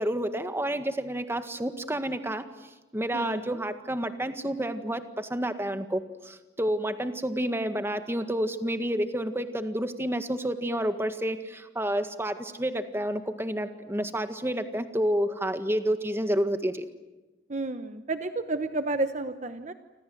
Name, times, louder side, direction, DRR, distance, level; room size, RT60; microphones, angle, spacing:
voice 1, 0.0-2.4 2.9-16.9, right 1 dB, 15° right, 8 dB, 1.7 m, -29 dB
voice 2, 3.1-3.5 17.5-19.7, right 2 dB, 40° right, 9 dB, 1.1 m, -31 dB
29.0 x 26.0 x 7.9 m, 1.1 s
head